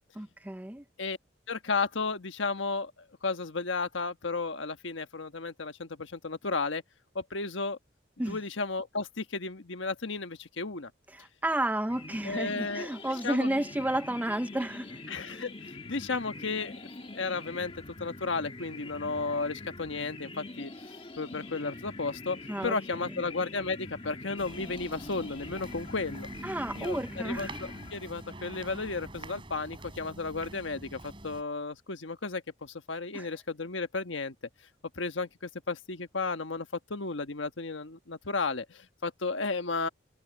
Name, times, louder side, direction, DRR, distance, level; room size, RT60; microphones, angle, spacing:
voice 1, 0.2-0.8 8.2-8.4 11.1-15.0 22.5-23.1 26.4-27.5 33.1-33.3, right 1 dB, 10° right, 0.5 m, -32 dB
voice 2, 1.5-2.9 3.2-6.8 7.1-7.8 8.3-10.9 12.2-12.9 13.2-13.5 15.1-16.7 17.1-17.7 18.0-26.3 26.7-27.5 27.9-34.3 35.0-39.9, left 3 dB, 75° left, 1.3 m, -33 dB
sound 1, 11.9-28.5, left 2 dB, 30° left, 1.9 m, -44 dB
sound 2, 24.4-31.4, right 1 dB, 25° right, 3.7 m, -46 dB
head